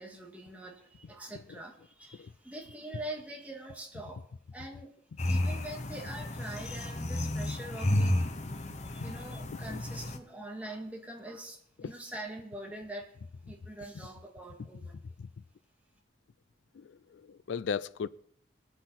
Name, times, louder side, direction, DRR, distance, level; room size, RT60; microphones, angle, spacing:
voice 1, 0.0-4.2 4.5-4.9 5.2-8.3 8.9-13.1 13.5-14.9, right 1 dB, 10° right, 2.0 m, -44 dB
sound 1, 5.2-10.2, left 1 dB, 40° left, 0.9 m, -32 dB
voice 2, 16.7-18.1, left 6 dB, 85° left, 0.4 m, -37 dB
21.0 x 7.9 x 4.2 m
head